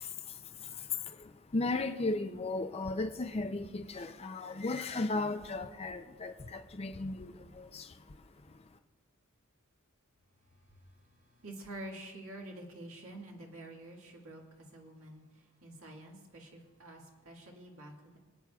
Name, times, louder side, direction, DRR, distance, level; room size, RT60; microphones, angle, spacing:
voice 1, 0.0-8.6, left 3 dB, 30° left, 0.5 m, -36 dB
voice 2, 11.4-14.4 14.7-15.2 15.6-18.2, right 1 dB, 75° right, 1.9 m, -48 dB
25.0 x 8.9 x 2.4 m
head